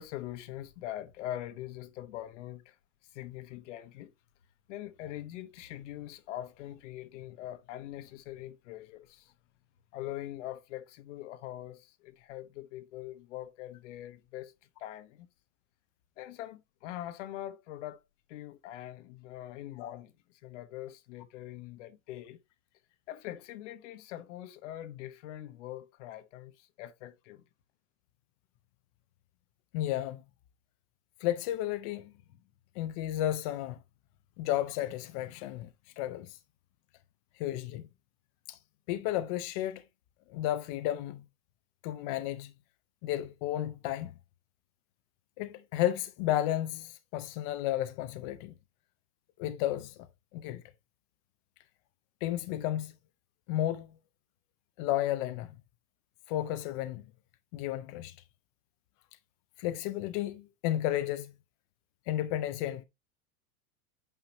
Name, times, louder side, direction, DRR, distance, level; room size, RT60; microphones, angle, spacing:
voice 1, 0.0-2.7 3.1-4.1 4.7-9.3 9.9-14.5 14.8-15.3 16.2-18.0 18.3-20.1 20.4-22.4 23.1-27.4, left 13 dB, 60° left, 1.1 m, -43 dB
voice 2, 29.7-30.2 31.2-32.1 32.8-33.8 34.4-35.7 36.0-36.4 37.4-37.9 38.5-38.6 38.9-39.8 40.3-41.2 41.8-42.5 43.0-44.1 45.4-48.5 49.4-50.0 50.3-50.6 52.2-53.0 53.5-54.0 54.8-55.5 56.3-57.1 57.5-58.2 59.6-61.3 62.1-62.8, left 13 dB, 30° left, 0.4 m, -32 dB
8.9 x 5.7 x 2.8 m
supercardioid pair, 165°, 40 cm